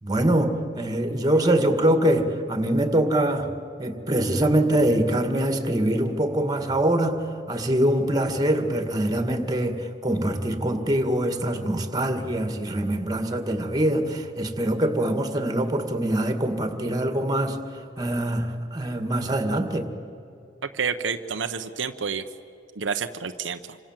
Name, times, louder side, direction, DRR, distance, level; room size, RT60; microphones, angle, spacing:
voice 1, 0.0-3.5 3.8-7.2 7.5-17.6 18.0-19.9, right 1 dB, 20° right, 7 dB, 2.1 m, -24 dB
voice 2, 20.7-22.2 22.8-23.8, right 6 dB, 75° right, 7 dB, 0.9 m, -29 dB
28.0 x 25.5 x 7.5 m, 2.7 s
head